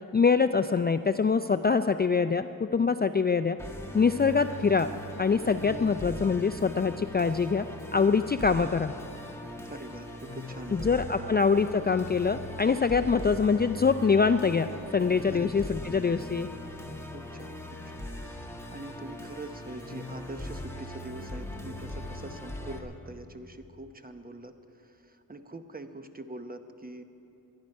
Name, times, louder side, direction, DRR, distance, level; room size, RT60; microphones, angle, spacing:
voice 1, 0.1-3.6 3.9-4.9 5.2-7.7 7.9-8.9 10.7-16.5, left 5 dB, 30° left, 9 dB, 0.4 m, -24 dB
Musical instrument, 3.6-22.8, left 1 dB, 5° left, 1.8 m, -40 dB
voice 2, 9.7-11.3 15.3-15.7 17.1-27.0, right 2 dB, 25° right, 8 dB, 0.9 m, -44 dB
23.0 x 10.5 x 5.4 m, 2.8 s
wide cardioid pair, 80°, 35 cm